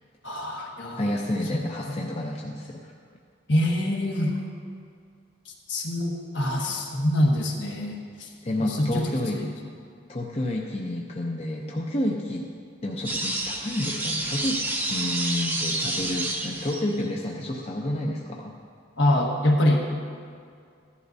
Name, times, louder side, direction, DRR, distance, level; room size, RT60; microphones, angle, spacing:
voice 1, 0.2-1.0 1.5-1.6 1.9-2.0 3.5-4.4 5.4-8.3 8.6-9.5 19.0-19.8, left 1 dB, 65° left, -1 dB, 1.5 m, -25 dB
voice 2, 1.0-2.9 8.4-9.4 10.1-12.4 12.8-14.6 14.9-18.5, left 1 dB, 30° left, -1 dB, 0.6 m, -30 dB
sound 1, 13.0-17.1, right 2 dB, 10° right, 0.7 m, -29 dB
14.5 x 11.0 x 2.7 m, 2.3 s
head